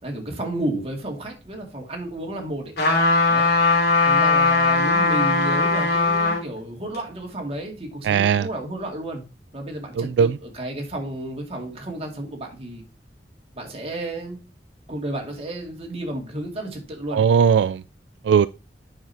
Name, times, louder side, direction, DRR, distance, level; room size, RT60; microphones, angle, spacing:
voice 1, 0.0-2.7 3.3-3.5 4.0-9.2 9.5-12.8 13.5-14.4 14.9-17.3, right 1 dB, 35° right, 2.3 m, -32 dB
sound 1, 2.8-6.4 6.9-7.0, left 3 dB, 65° left, 3.1 m, -19 dB
voice 2, 8.1-8.5 10.0-10.3 17.1-17.8 18.3-18.5, right 7 dB, 80° right, 0.3 m, -18 dB
9.2 x 6.0 x 2.8 m
head